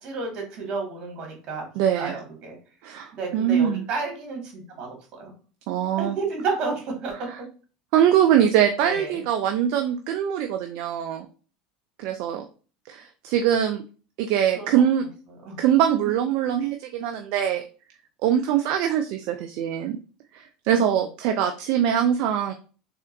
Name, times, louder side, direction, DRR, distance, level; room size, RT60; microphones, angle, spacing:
voice 1, 0.0-1.6 2.0-2.6 3.1-5.3 6.0-7.3 8.8-9.2 14.6-14.7 15.5-15.6, right 4 dB, 50° right, 0 dB, 2.0 m, -31 dB
voice 2, 1.8-2.2 2.8-3.9 5.7-6.2 7.2-7.4 7.9-11.3 12.0-12.4 12.9-13.8 14.2-15.0 15.6-17.6 18.2-20.0 20.3-22.5, right 9 dB, 65° right, 6 dB, 0.4 m, -23 dB
3.6 x 3.3 x 2.7 m, 0.37 s
hypercardioid pair, 90°, 2 cm